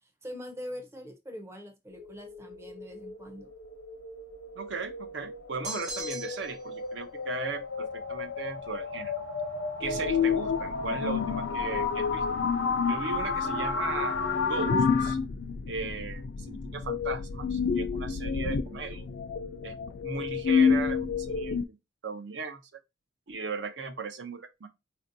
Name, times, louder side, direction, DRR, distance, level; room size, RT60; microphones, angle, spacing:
voice 1, 0.0-3.5, equal, 15° right, 0.5 m, -43 dB
sound 1, 1.9-15.1, left 4 dB, 90° left, 0.7 m, -33 dB
voice 2, 4.6-9.1 9.8-12.2 12.8-14.2 14.5-15.2 15.7-19.1 19.6-19.7 20.0-21.8 22.0-22.6 23.3-24.7, right 4 dB, 70° right, 0.6 m, -37 dB
sound 2, 5.6-6.6, right 3 dB, 35° right, 0.9 m, -38 dB
sound 3, 9.8-21.7, left 6 dB, 60° left, 0.3 m, -30 dB
4.3 x 2.6 x 2.6 m
head